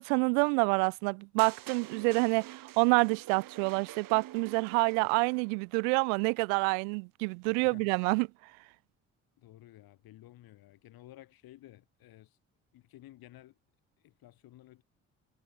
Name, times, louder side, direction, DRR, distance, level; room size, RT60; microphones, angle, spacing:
voice 1, 0.0-8.3, right 39 dB, 80° right, 0.5 m, -27 dB
sound 1, 1.4-5.6, right 14 dB, 60° right, 1.2 m, -47 dB
voice 2, 7.5-7.9 9.4-12.4 12.7-13.6 14.0-14.8, left 15 dB, 65° left, 4.2 m, -54 dB
hypercardioid pair, 50°, 38 cm